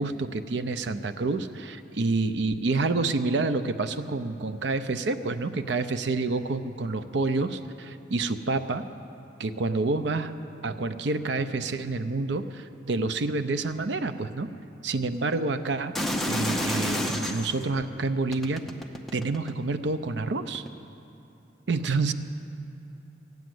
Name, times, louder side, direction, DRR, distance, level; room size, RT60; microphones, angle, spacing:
voice 1, 0.0-8.8 9.4-10.3 10.6-14.5 14.8-16.0 16.3-18.7 19.1-20.6 21.7-22.1, right 3 dB, 70° right, 11 dB, 0.6 m, -28 dB
sound 1, 15.9-17.6 18.3-19.7 20.5-20.7, equal, ahead, 0.6 m, -29 dB
16.0 x 9.2 x 7.8 m, 2.8 s
head